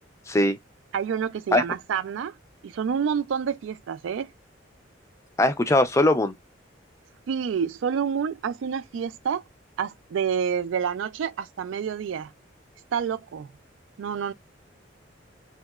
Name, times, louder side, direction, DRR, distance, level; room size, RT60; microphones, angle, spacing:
voice 1, 0.3-0.6 1.5-1.6 5.4-6.3, left 1 dB, 15° left, 0.4 m, -20 dB
voice 2, 0.9-2.3 2.6-4.3 7.3-9.4 9.8-12.3 12.9-13.5 14.0-14.3, right 7 dB, 80° right, 0.3 m, -28 dB
3.0 x 2.8 x 2.3 m
head